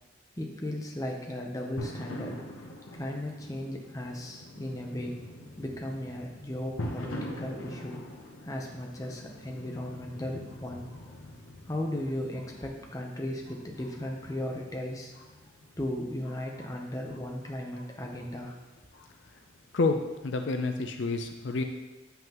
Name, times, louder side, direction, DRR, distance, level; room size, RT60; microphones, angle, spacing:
voice 1, 0.4-2.4 2.9-5.2 5.6-8.0 8.4-10.9 11.6-15.1 15.8-18.6, left 1 dB, 15° left, 0 dB, 0.7 m, -36 dB
sound 1, 1.8-19.8, left 1 dB, 85° left, 0.8 m, -45 dB
voice 2, 19.7-21.6, left 3 dB, 65° left, 6 dB, 0.5 m, -29 dB
7.7 x 5.6 x 2.9 m, 1.1 s
head